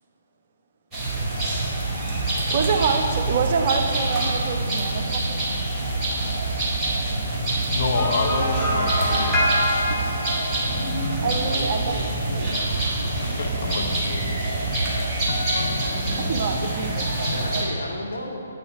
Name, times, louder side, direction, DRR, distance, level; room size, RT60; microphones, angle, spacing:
sound 1, 0.9-17.6, right 2 dB, 15° right, 1.5 m, -26 dB
voice 1, 2.5-5.4 11.2-11.8 16.1-17.4, right 5 dB, 40° right, 0.6 m, -26 dB
voice 2, 7.2-10.1 10.4-11.8 12.1-12.7 13.0-17.4, left 4 dB, 50° left, 0.7 m, -31 dB
sound 2, 8.0-11.3, left 1 dB, 10° left, 1.1 m, -26 dB
voice 3, 11.5-13.5 17.2-18.5, left 1 dB, 75° left, 1.1 m, -35 dB
7.9 x 5.6 x 4.5 m
figure-of-eight pair, 135°, 0 cm